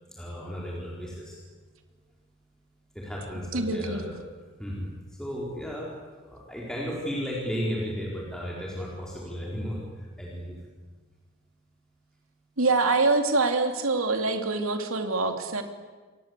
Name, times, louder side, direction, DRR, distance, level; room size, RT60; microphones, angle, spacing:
voice 1, 0.1-1.4 2.9-4.2 4.6-5.9 6.2-10.6, equal, 5° left, -4 dB, 4.6 m, -34 dB
voice 2, 3.5-4.0 12.6-15.6, right 3 dB, 85° right, 6 dB, 2.8 m, -25 dB
29.0 x 22.5 x 8.3 m, 1.4 s
head